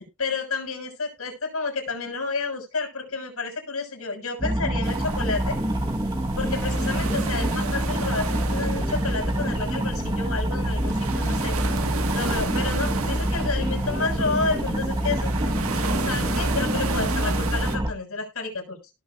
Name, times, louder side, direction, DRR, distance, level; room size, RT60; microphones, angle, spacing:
voice 1, 0.2-5.6 6.4-11.6 12.1-15.3 15.7-18.8, left 4 dB, 80° left, 2 dB, 6.5 m, -30 dB
sound 1, 4.4-17.9, right 1 dB, 20° right, 1.3 m, -26 dB
sound 2, 4.8-17.8, right 4 dB, 80° right, 1.5 m, -33 dB
18.0 x 6.4 x 2.4 m, 0.27 s
head